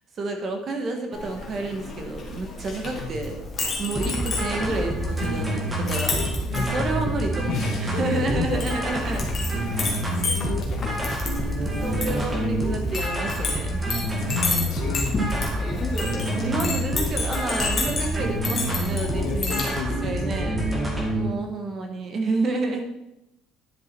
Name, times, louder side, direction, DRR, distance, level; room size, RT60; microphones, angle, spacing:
voice 1, 0.2-3.3 3.8-6.2 6.5-7.5 7.8-9.3 11.6-13.8 16.3-19.6 20.0-20.6 21.1-22.8, right 3 dB, 30° right, 4 dB, 1.4 m, -30 dB
Chink clink, 1.1-19.7, left 3 dB, 20° left, 2.2 m, -31 dB
voice 2, 2.8-3.2 6.5-7.1 7.5-8.6 9.2-9.3 9.5-11.1 14.1-15.7 19.2-20.5, left 3 dB, 60° left, 1 dB, 2.3 m, -32 dB
sound 1, 4.0-21.3, right 1 dB, 15° right, 1.8 m, -28 dB
10.5 x 7.2 x 4.6 m, 0.89 s
cardioid pair, 175°, 0 cm